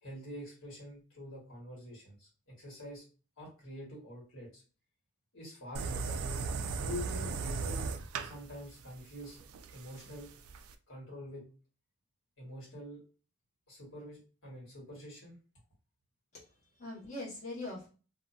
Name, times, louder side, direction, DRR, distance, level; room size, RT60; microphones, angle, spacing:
voice 1, 0.0-3.1 3.4-4.6 5.3-6.2 6.7-7.9 8.2-10.3 10.9-11.4 12.4-13.0 13.7-15.4, left 1 dB, 65° left, -4 dB, 1.5 m, -46 dB
sound 1, 5.7-10.7, right 4 dB, 70° right, 0.3 m, -37 dB
voice 2, 16.3-17.9, left 2 dB, 35° left, -7 dB, 1.2 m, -42 dB
2.7 x 2.3 x 2.6 m, 0.36 s
head